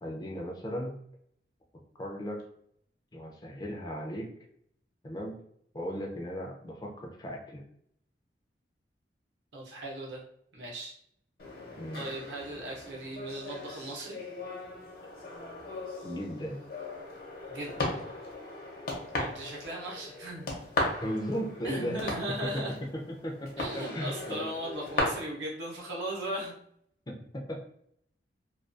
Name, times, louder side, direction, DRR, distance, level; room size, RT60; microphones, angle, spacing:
voice 1, 0.0-1.0 2.0-2.4 3.1-4.3 5.0-5.4 5.7-7.6 11.8-12.0 16.0-16.6 20.8-22.0 22.5-22.6 23.2-24.5 25.4-25.5 27.1-27.6, equal, 25° left, 0 dB, 0.4 m, -36 dB
voice 2, 9.5-10.2 10.5-10.9 11.9-14.2 17.5-18.0 19.2-20.5 21.6-22.8 23.6-26.5, right 1 dB, 85° right, -2 dB, 0.7 m, -37 dB
sound 1, 11.4-25.0, left 2 dB, 55° left, 0.7 m, -38 dB
2.3 x 2.2 x 2.5 m, 0.69 s
head